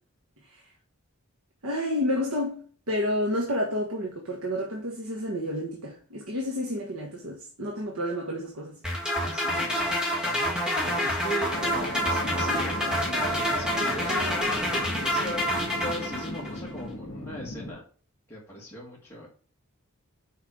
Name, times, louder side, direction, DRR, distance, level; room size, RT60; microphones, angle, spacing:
voice 1, 1.6-8.8, left 1 dB, 85° right, 1.5 m, -30 dB
sound 1, 8.8-16.6, equal, 5° right, 1.5 m, -27 dB
voice 2, 9.2-9.9 10.2-11.5 11.8-14.4 14.7-17.8 18.3-19.3, equal, 10° left, 1.8 m, -40 dB
sound 2, 11.5-17.7, left 1 dB, 50° left, 1.9 m, -37 dB
5.8 x 5.3 x 6.4 m
head